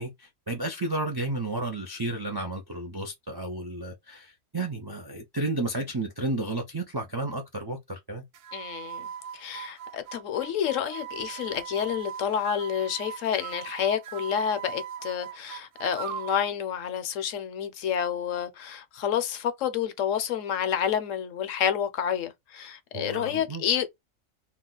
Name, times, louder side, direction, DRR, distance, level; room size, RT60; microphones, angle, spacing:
voice 1, 0.0-8.2 22.9-23.6, right 2 dB, 40° right, 0.3 m, -32 dB
sound 1, 8.3-16.5, right 9 dB, 75° right, 1.0 m, -40 dB
voice 2, 8.5-23.9, left 9 dB, 70° left, 1.0 m, -29 dB
2.9 x 2.2 x 3.8 m
omnidirectional pair, 1.4 m